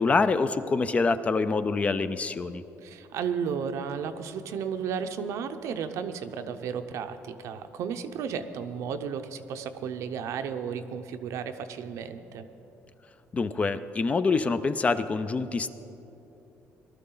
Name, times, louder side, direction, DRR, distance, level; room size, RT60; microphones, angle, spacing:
voice 1, 0.0-2.6 13.3-15.7, left 4 dB, 25° left, 12 dB, 0.4 m, -25 dB
voice 2, 2.8-12.5, right 7 dB, 75° right, 8 dB, 0.7 m, -33 dB
18.5 x 12.0 x 3.9 m, 3.0 s
cardioid pair, 130°, 5 cm